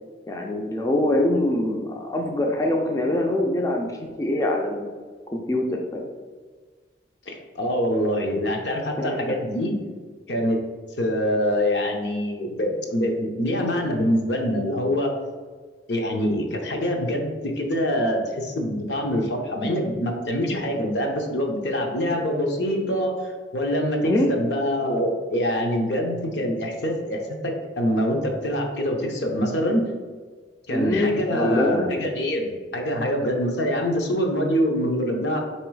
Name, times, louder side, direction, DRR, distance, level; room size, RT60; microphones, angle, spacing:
voice 1, 0.3-4.9 5.3-6.1 9.0-9.4 24.0-24.3 29.6-29.7 30.7-31.9, left 1 dB, 15° left, 1 dB, 0.3 m, -24 dB
voice 2, 7.3-9.7 10.3-10.6 11.0-15.1 15.9-23.1 23.5-29.8 30.7-35.4, equal, 70° left, 1 dB, 0.8 m, -25 dB
3.9 x 2.9 x 4.6 m, 1.5 s
head